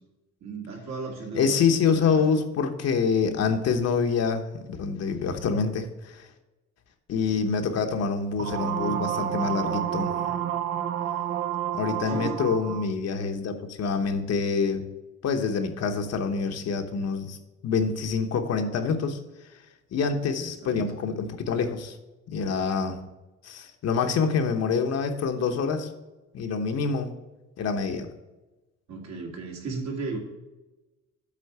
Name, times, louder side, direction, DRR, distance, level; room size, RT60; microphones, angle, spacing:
voice 1, 0.4-1.5 1.9-2.2 12.0-12.4 20.3-21.1 28.9-30.2, right 4 dB, 65° right, -1 dB, 2.3 m, -35 dB
voice 2, 1.3-4.4 4.8-6.3 7.1-10.1 11.7-14.8 15.2-17.4 17.6-19.2 19.9-22.0 22.3-23.0 23.4-25.9 26.3-27.1 27.6-28.1, left 5 dB, 60° left, 6 dB, 1.0 m, -26 dB
sound 1, 8.4-12.9, right 10 dB, 45° right, 0.5 m, -29 dB
8.4 x 3.8 x 6.7 m, 1.1 s
cardioid pair, 125°, 30 cm